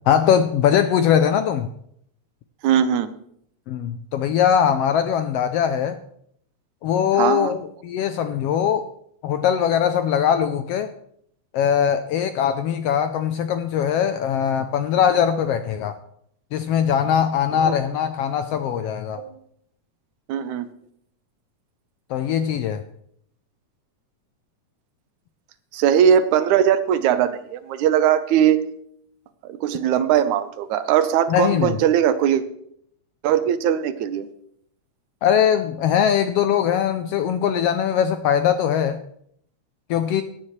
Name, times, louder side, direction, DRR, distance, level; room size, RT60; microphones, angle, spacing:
voice 1, 0.1-1.7 3.7-6.0 6.8-8.9 9.2-10.9 11.5-16.0 16.5-19.2 22.1-22.8 31.3-31.8 35.2-39.0 39.9-40.2, left 8 dB, 85° left, 9 dB, 1.4 m, -21 dB
voice 2, 2.6-3.1 7.2-7.5 17.5-17.8 19.2-19.4 20.3-20.7 25.7-28.7 29.4-32.4 33.2-34.3, right 9 dB, 80° right, 12 dB, 2.1 m, -20 dB
16.5 x 10.0 x 3.2 m, 0.69 s
omnidirectional pair, 3.3 m